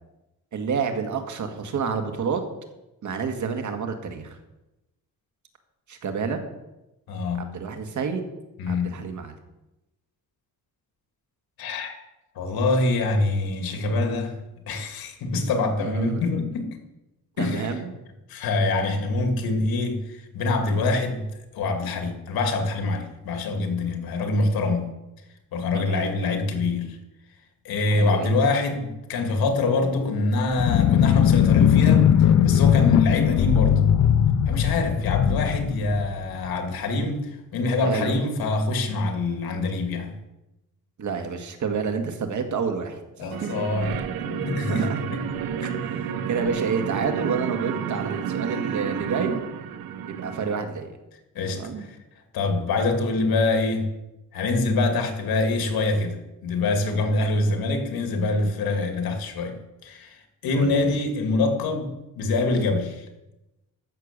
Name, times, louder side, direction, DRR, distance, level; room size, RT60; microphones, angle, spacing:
voice 1, 0.5-2.4 3.0-4.4 5.9-6.4 7.4-8.2 8.7-9.3 15.8-16.2 17.4-17.9 25.7-26.4 27.9-28.3 37.8-38.2 41.0-43.0 43.4-43.6 44.7-45.0 45.6-49.4 50.1-50.9 51.5-51.9 60.5-60.8, right 5 dB, 55° right, 5 dB, 1.9 m, -29 dB
voice 2, 7.1-7.5 8.6-8.9 11.6-12.0 12.4-14.4 14.7-16.7 17.4-17.7 18.3-21.3 21.5-24.9 25.5-27.0 27.6-33.8 34.5-40.1 43.2-45.2 51.3-51.9 52.3-53.9 54.3-63.1, left 3 dB, 85° left, 5 dB, 2.3 m, -25 dB
sound 1, 30.5-36.5, left 9 dB, 50° left, 0.6 m, -19 dB
sound 2, 43.3-50.5, right 8 dB, 80° right, 1.0 m, -31 dB
14.5 x 6.7 x 6.7 m, 0.97 s
cardioid pair, 115°, 35 cm